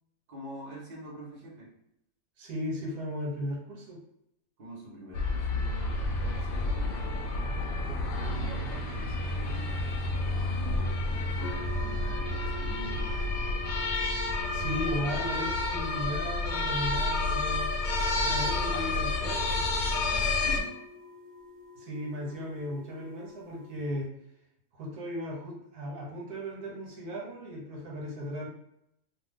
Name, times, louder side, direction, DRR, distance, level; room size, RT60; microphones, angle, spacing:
voice 1, 0.3-1.7 4.6-9.7 10.5-13.3 20.4-20.8, right 1 dB, 40° right, -3 dB, 1.1 m, -45 dB
voice 2, 2.4-4.0 14.5-17.7 18.2-19.6 21.8-24.1 24.7-28.5, equal, 85° right, -2 dB, 1.4 m, -36 dB
sound 1, 5.1-20.6, left 2 dB, 70° left, 0.9 m, -30 dB
sound 2, 11.4-23.9, left 2 dB, 20° left, 0.8 m, -45 dB
2.6 x 2.4 x 3.5 m, 0.78 s
omnidirectional pair, 1.6 m